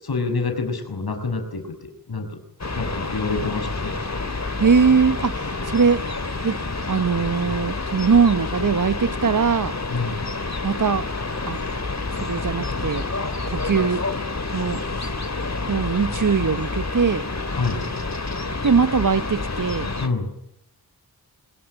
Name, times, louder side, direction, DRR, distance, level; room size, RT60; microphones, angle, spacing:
voice 1, 0.1-1.7 2.1-2.3 2.7-3.9 9.9-10.2 17.5-17.8 20.0-20.3, left 4 dB, 85° left, 6 dB, 6.3 m, -26 dB
sound 1, 2.6-20.1, left 3 dB, 45° left, 3.4 m, -28 dB
voice 2, 4.6-6.0 6.4-6.6 6.9-9.8 10.6-11.1 11.5-11.6 12.2-13.1 13.5-14.1 14.5-14.8 15.7-17.3 18.6-19.9, right 5 dB, 60° right, 14 dB, 1.2 m, -21 dB
25.5 x 22.0 x 10.0 m, 0.76 s
wide cardioid pair, 50°, 37 cm